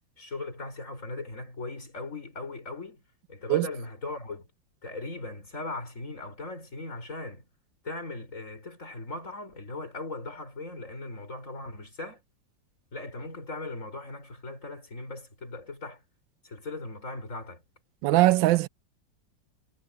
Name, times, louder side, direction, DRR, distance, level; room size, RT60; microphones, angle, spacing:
voice 1, 0.2-3.0 3.3-4.5 4.8-7.5 7.8-12.2 12.9-16.0 16.4-17.6, left 2 dB, 40° left, 5.7 m, -38 dB
voice 2, 18.0-18.7, right 17 dB, 80° right, 1.3 m, -21 dB
omnidirectional pair, 2.1 m